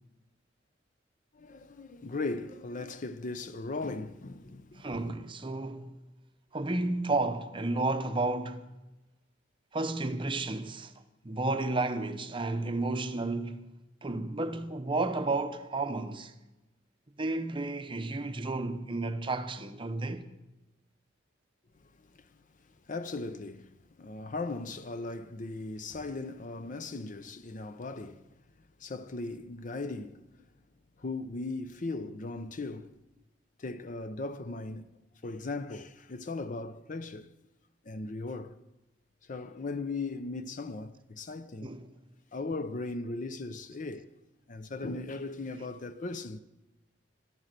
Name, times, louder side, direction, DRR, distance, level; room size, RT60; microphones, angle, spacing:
voice 1, 1.3-4.9 22.9-23.7 24.0-28.2 28.8-30.2 31.0-32.9 33.6-34.9 35.2-37.3 37.9-38.6 39.3-41.7 42.3-44.1 44.5-46.4, left 3 dB, 40° left, 0.6 m, -38 dB
voice 2, 4.8-6.0 6.5-8.7 9.7-10.9 11.2-13.7 14.0-16.3 17.2-20.2 41.6-41.9, right 2 dB, 25° right, 0.7 m, -32 dB
12.5 x 11.5 x 6.6 m
head